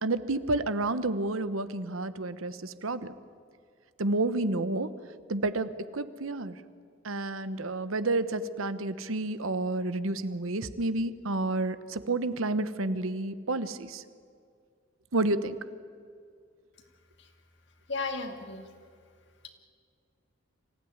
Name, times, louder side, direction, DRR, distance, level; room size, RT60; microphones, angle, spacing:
voice 1, 0.0-3.1 4.0-4.9 5.3-6.5 7.0-14.0 15.1-15.6, right 2 dB, 80° right, 13 dB, 1.0 m, -30 dB
voice 2, 17.9-18.7, left 3 dB, 55° left, 5 dB, 2.2 m, -34 dB
25.0 x 16.0 x 9.6 m, 2.2 s
head